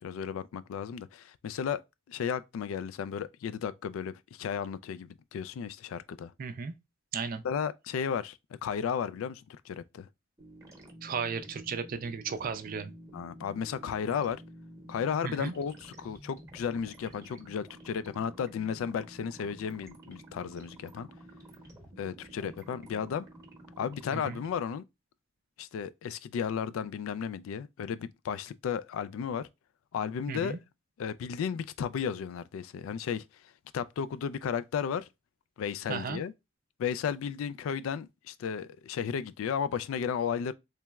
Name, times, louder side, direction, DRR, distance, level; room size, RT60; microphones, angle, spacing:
voice 1, 0.0-1.8 2.1-6.3 7.4-10.1 13.1-14.4 14.9-21.1 22.0-23.3 23.8-24.8 25.6-29.5 29.9-30.6 31.0-33.2 33.7-35.1 35.6-36.3 36.8-40.5, left 7 dB, 80° left, 0.3 m, -34 dB
voice 2, 6.4-6.7 7.1-7.4 11.0-12.9 15.2-15.5 24.1-24.4 30.3-30.6 35.9-36.2, right 5 dB, 45° right, 0.4 m, -35 dB
sound 1, 10.4-24.5, right 1 dB, 15° right, 0.9 m, -51 dB
3.3 x 2.9 x 2.3 m
head